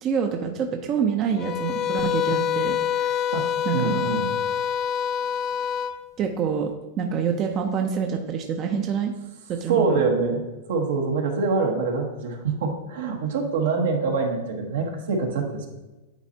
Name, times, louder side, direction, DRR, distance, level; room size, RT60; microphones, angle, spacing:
voice 1, 0.0-3.2 3.6-4.0 6.2-6.7 7.0-9.1 9.5-10.0, right 7 dB, 35° right, 4 dB, 0.6 m, -26 dB
sound 1, 1.4-6.0, left 8 dB, 35° left, 0.3 m, -26 dB
voice 2, 3.3-4.3 9.7-10.4 10.7-15.7, right 4 dB, 75° right, 2 dB, 1.2 m, -25 dB
9.1 x 4.2 x 2.8 m, 1.1 s
hypercardioid pair, 115°, 0 cm